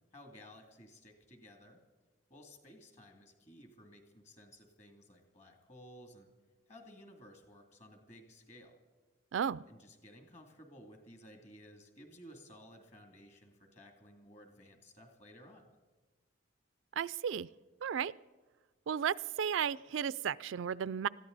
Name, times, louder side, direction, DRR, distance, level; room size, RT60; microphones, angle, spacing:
voice 1, 0.1-1.8 2.3-6.3 6.7-8.8 9.7-15.7, equal, 35° left, 4 dB, 2.6 m, -56 dB
voice 2, 9.3-9.6 17.0-17.5 17.8-18.1 18.9-21.1, right 8 dB, 70° right, 18 dB, 0.4 m, -34 dB
20.5 x 14.5 x 4.0 m, 1.3 s
head